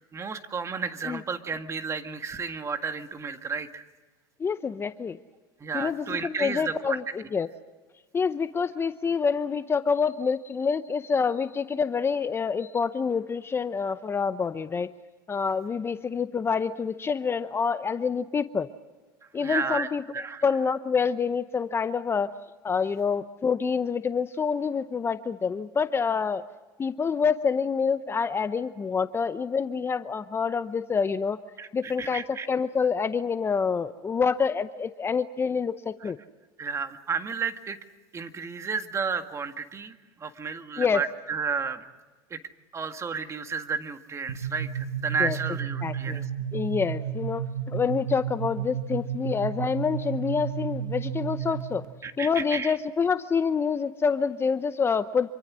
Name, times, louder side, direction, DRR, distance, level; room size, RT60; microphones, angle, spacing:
voice 1, 0.1-3.8 5.6-7.0 19.4-20.4 31.6-32.5 36.0-36.1 36.6-37.8 38.1-41.8 42.3-42.4 42.7-46.2 52.0-52.8, right 5 dB, 25° right, 8 dB, 1.9 m, -32 dB
voice 2, 4.4-5.2 5.7-7.5 8.1-14.9 15.3-18.7 19.3-20.0 20.4-22.3 22.6-26.4 26.8-31.4 31.7-32.2 32.5-36.2 40.8-41.0 45.2-45.4 45.8-46.2 46.5-51.8 52.2-55.3, left 5 dB, 20° left, 12 dB, 0.7 m, -27 dB
sound 1, 44.3-51.8, right 8 dB, 85° right, 2.5 m, -32 dB
26.5 x 24.5 x 6.3 m, 1.3 s
supercardioid pair, 110°, 11 cm